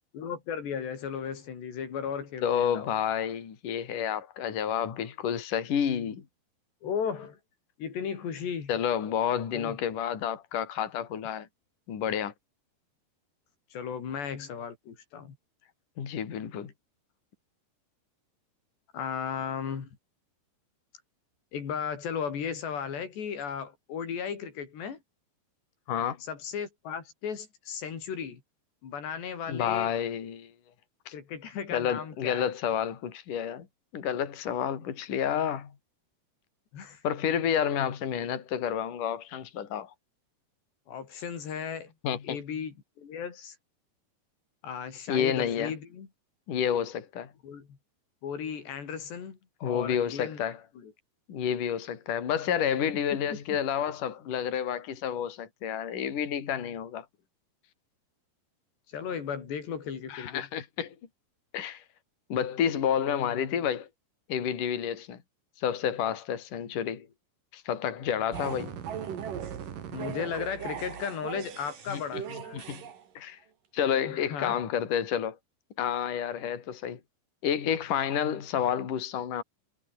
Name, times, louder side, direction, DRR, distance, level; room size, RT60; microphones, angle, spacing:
voice 1, 0.1-2.9 6.8-7.4 7.8-8.7 9.5-9.8 13.7-15.4 18.9-19.9 21.5-25.0 26.3-28.4 28.8-29.9 31.1-32.5 36.7-37.0 40.9-41.9 42.2-43.5 44.6-46.1 47.4-47.8 48.2-50.9 53.1-53.6 58.9-60.5 69.9-72.6 74.0-74.6 76.4-76.5, left 7 dB, 90° left, 6.4 m, -36 dB
voice 2, 2.4-6.2 8.7-11.5 11.9-12.3 16.0-16.7 25.9-26.2 29.5-30.5 31.1-31.2 31.7-33.7 33.9-35.7 37.0-39.9 42.0-42.4 45.1-45.7 46.5-47.3 49.6-50.6 51.3-57.1 60.1-61.0 61.5-61.8 62.3-63.9 64.3-65.2 65.6-67.1 67.5-68.8 71.9-72.8 73.2-73.4 73.7-75.4 75.8-77.0 77.4-79.4, left 8 dB, 55° left, 4.4 m, -30 dB
sound 1, 68.3-73.0, right 8 dB, 55° right, 3.9 m, -38 dB
omnidirectional pair, 4.8 m